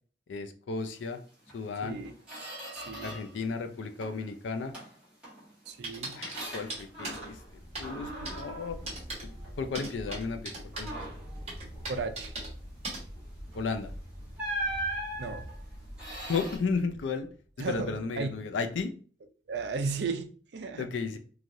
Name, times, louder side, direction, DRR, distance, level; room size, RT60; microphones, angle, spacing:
voice 1, 0.3-1.2 1.5-2.0 3.0-4.7 6.1-7.4 7.8-8.8 9.2-11.0 13.5-13.9 16.3-17.3 17.6-18.9 20.8-21.2, left 4 dB, 80° left, 7 dB, 0.4 m, -34 dB
Squeak, 1.5-1.6 2.0-3.4 3.7-4.3 4.7-7.5 7.8-9.7 10.1-10.3 10.7-11.4 13.5-13.7 14.4-16.6, right 1 dB, 5° right, 1.0 m, -39 dB
voice 2, 1.8-2.1 2.7-3.2 5.7-6.2 11.9-12.3 15.2-15.5 17.6-18.4 19.5-20.9, right 4 dB, 65° right, 7 dB, 0.4 m, -35 dB
sound 1, 5.8-7.2 7.7-7.9 8.2-8.4 8.9-9.2 9.7-10.9 11.5-12.5 12.8-13.0, right 2 dB, 35° right, 1.0 m, -38 dB
sound 2, 6.5-17.5, equal, 20° left, 0.9 m, -46 dB
3.1 x 2.4 x 2.6 m, 0.42 s
head